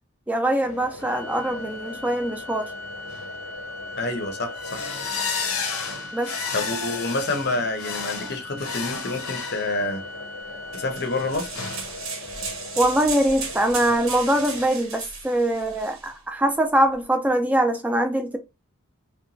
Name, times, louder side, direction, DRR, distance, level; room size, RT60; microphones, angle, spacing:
voice 1, 0.3-2.7 6.1-6.3 12.8-18.4, right 1 dB, 5° right, 0.3 m, -23 dB
sound 1, 0.6-14.7, left 4 dB, 85° left, 0.7 m, -34 dB
Organ, 1.0-12.0, left 2 dB, 15° left, 0.8 m, -40 dB
voice 2, 4.0-4.9 6.5-10.0 10.7-11.5, left 2 dB, 50° left, 0.6 m, -28 dB
sound 2, 10.7-16.1, right 5 dB, 75° right, 0.8 m, -35 dB
2.9 x 2.2 x 2.5 m
head